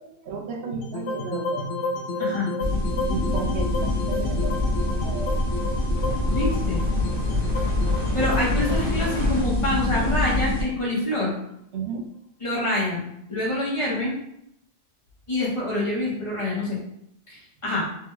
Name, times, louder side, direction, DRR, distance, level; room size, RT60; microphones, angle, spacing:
voice 1, 0.0-1.6 3.1-5.4 7.5-7.6 11.7-12.1, right 4 dB, 65° right, 3 dB, 0.7 m, -34 dB
sound 1, 0.8-11.0, left 2 dB, 70° left, 0.9 m, -32 dB
voice 2, 2.2-2.5 6.3-6.8 8.1-11.3 12.4-13.0 13.3-14.2 15.3-16.8 17.3-17.9, left 1 dB, 30° left, -5 dB, 0.8 m, -26 dB
sound 2, 2.6-10.6, left 1 dB, 45° right, 1.0 m, -25 dB
3.4 x 2.2 x 3.0 m, 0.75 s
omnidirectional pair, 1.4 m